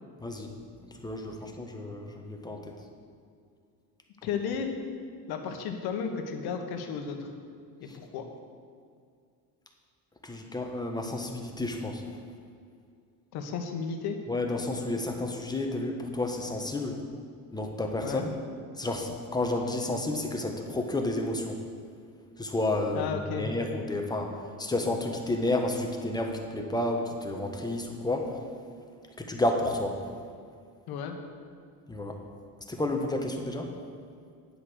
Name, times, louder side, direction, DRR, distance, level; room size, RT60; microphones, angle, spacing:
voice 1, 0.2-0.5 0.9-2.7 7.9-8.0 10.2-12.0 14.3-17.0 17.5-18.3 18.8-21.6 22.4-28.4 29.2-30.0 31.9-32.2 32.7-33.7, left 2 dB, 10° left, 2 dB, 1.4 m, -31 dB
voice 2, 4.2-4.7 5.3-7.3 7.8-8.2 13.3-14.2 18.0-18.3 22.9-23.5 30.9-31.2, left 6 dB, 75° left, 5 dB, 1.6 m, -33 dB
10.0 x 8.0 x 6.4 m, 2.3 s
cardioid pair, 115°, 38 cm